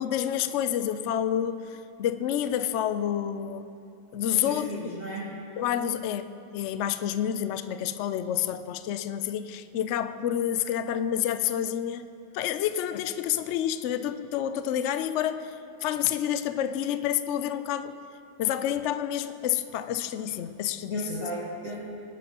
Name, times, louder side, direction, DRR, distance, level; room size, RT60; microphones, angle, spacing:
voice 1, 0.0-3.7 4.1-4.9 5.6-12.0 12.3-18.0 18.4-21.3, left 10 dB, 80° left, 11 dB, 0.6 m, -29 dB
voice 2, 4.3-5.3 20.9-21.8, right 1 dB, 35° right, -10 dB, 3.1 m, -35 dB
20.0 x 11.0 x 2.9 m, 2.6 s
omnidirectional pair, 1.8 m